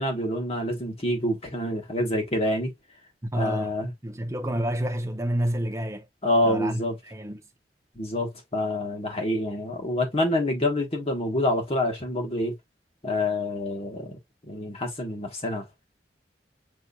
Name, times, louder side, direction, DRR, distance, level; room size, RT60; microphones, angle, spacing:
voice 1, 0.0-2.7 3.3-3.9 6.2-6.9 7.9-12.6 13.0-14.2 14.4-15.6, left 1 dB, 35° left, 1.4 m, -27 dB
voice 2, 3.3-3.7 4.0-6.1 6.4-6.8 7.1-7.4, right 1 dB, 15° right, 0.8 m, -28 dB
6.0 x 2.7 x 2.4 m
head